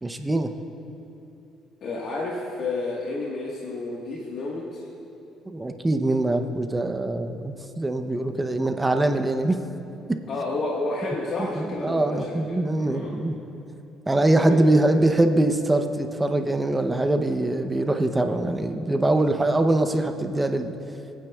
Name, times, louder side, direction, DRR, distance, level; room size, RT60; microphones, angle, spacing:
voice 1, 0.0-0.5 5.5-9.6 10.1-10.2 11.4-13.4 14.1-20.8, right 2 dB, 15° right, 7 dB, 0.6 m, -23 dB
voice 2, 1.8-4.9 10.3-13.2 14.4-14.8, left 2 dB, 60° left, -3 dB, 1.4 m, -31 dB
23.0 x 8.9 x 2.3 m, 2.8 s
cardioid pair, 95°, 0 cm